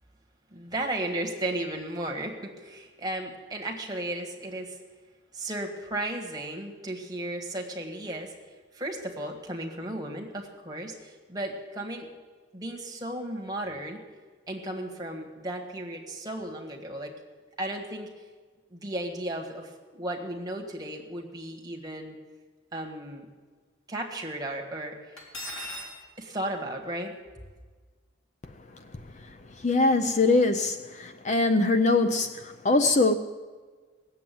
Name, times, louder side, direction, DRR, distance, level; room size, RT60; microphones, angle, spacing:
voice 1, 0.5-4.8 5.3-8.3 8.7-12.1 12.5-14.0 14.5-17.1 17.6-18.1 18.7-22.1 22.7-23.3 23.9-25.1 26.2-27.1, right 1 dB, 20° right, 1.7 m, -35 dB
Cutlery silverware, 25.2-25.9, equal, 80° left, 3.8 m, -37 dB
voice 2, 28.9-33.2, left 3 dB, 35° left, 0.5 m, -23 dB
18.0 x 7.7 x 9.3 m
head